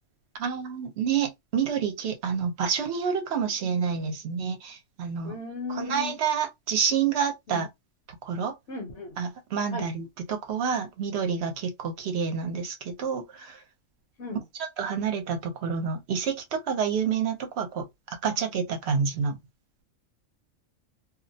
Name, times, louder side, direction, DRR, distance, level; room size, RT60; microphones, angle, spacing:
voice 1, 0.4-5.4 5.7-7.7 8.2-8.5 9.2-13.6 14.6-19.4, right 6 dB, 60° right, 0.9 m, -28 dB
voice 2, 5.2-6.1 7.5-7.6 8.7-9.1 9.7-9.9 14.2-14.4, left 3 dB, 65° left, 1.1 m, -35 dB
2.5 x 2.0 x 2.7 m
omnidirectional pair, 1.3 m